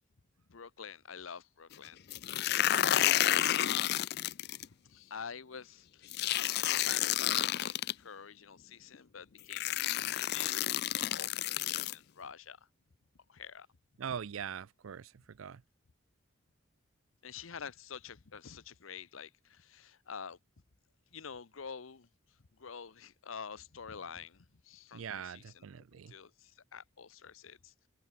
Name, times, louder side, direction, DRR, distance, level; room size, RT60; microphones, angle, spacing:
voice 1, 0.5-2.3 2.7-4.2 4.8-12.6 13.3-13.7 17.2-20.4 21.1-22.1 22.6-25.6 25.9-27.7, left 6 dB, 85° left, 0.9 m, -48 dB
Kitchen paper ripping, 2.1-4.7 6.1-7.9 8.9-9.0 9.5-11.9, left 12 dB, 55° left, 0.4 m, -30 dB
voice 2, 14.0-15.6 24.9-26.2, right 7 dB, 90° right, 0.5 m, -42 dB
head